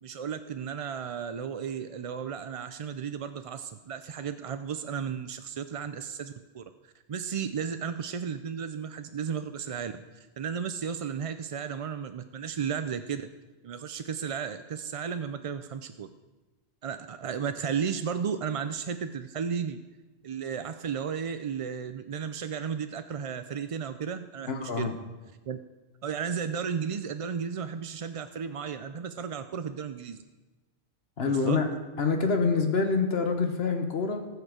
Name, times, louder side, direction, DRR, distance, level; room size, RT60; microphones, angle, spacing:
voice 1, 0.0-10.0 10.4-13.3 13.6-16.1 16.8-19.8 20.2-24.9 25.5-25.6 26.0-30.2 31.2-31.6, right 7 dB, 55° right, 9 dB, 0.3 m, -34 dB
voice 2, 24.5-24.9 31.2-31.7 32.0-34.3, left 4 dB, 70° left, 5 dB, 1.3 m, -26 dB
19.0 x 6.5 x 5.0 m, 1.2 s
omnidirectional pair, 1.1 m